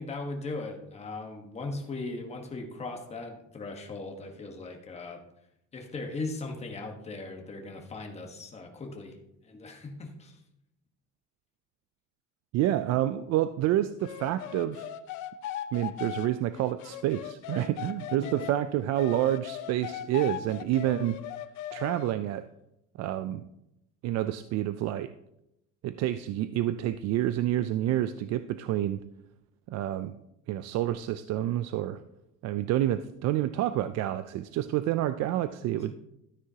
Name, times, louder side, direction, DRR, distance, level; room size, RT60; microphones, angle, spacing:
voice 1, 0.0-5.2 5.7-9.2 9.4-10.4 18.2-18.5 35.7-35.9, left 3 dB, 20° left, 2 dB, 1.3 m, -38 dB
voice 2, 12.5-14.9 15.7-21.2 21.7-22.5 23.0-23.4 24.0-25.1 25.8-29.0 29.7-30.2 30.5-32.0 32.4-35.9, right 13 dB, 60° right, 12 dB, 0.4 m, -28 dB
sound 1, 14.0-18.6 19.0-22.1, left 11 dB, 85° left, 0.6 m, -39 dB
13.0 x 9.5 x 2.8 m, 0.84 s
cardioid pair, 175°, 30 cm